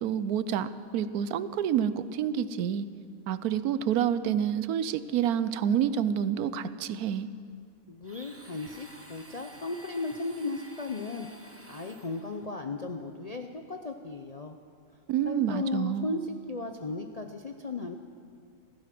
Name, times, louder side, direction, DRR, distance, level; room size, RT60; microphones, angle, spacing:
voice 1, 0.0-2.9 3.3-7.3 15.1-16.1, right 9 dB, 80° right, 14 dB, 1.1 m, -28 dB
voice 2, 7.9-11.3 11.7-14.6 15.3-18.0, left 3 dB, 45° left, 4 dB, 0.5 m, -35 dB
Domestic sounds home sounds, 8.0-12.5, right 1 dB, 10° right, 0.8 m, -51 dB
15.0 x 14.5 x 6.0 m, 2.2 s
omnidirectional pair, 1.6 m